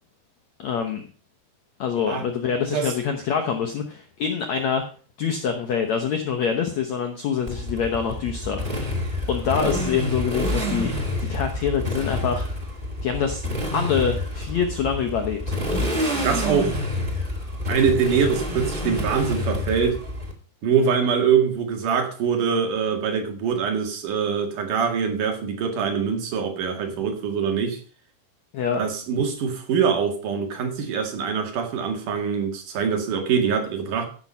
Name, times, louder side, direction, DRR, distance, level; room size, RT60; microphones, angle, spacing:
voice 1, 0.6-1.0 1.8-4.9 5.2-8.8 9.3-10.9 11.2-12.5 13.0-13.4 13.7-16.1 28.5-28.8, left 7 dB, 80° left, 4 dB, 1.6 m, -25 dB
Motorcycle, 7.5-20.3, left 1 dB, 25° right, 1.2 m, -28 dB
voice 2, 16.1-16.7 17.7-20.0 20.6-27.8 28.8-34.1, right 6 dB, 55° right, 4 dB, 3.3 m, -23 dB
15.0 x 6.2 x 5.6 m, 0.40 s
omnidirectional pair, 4.7 m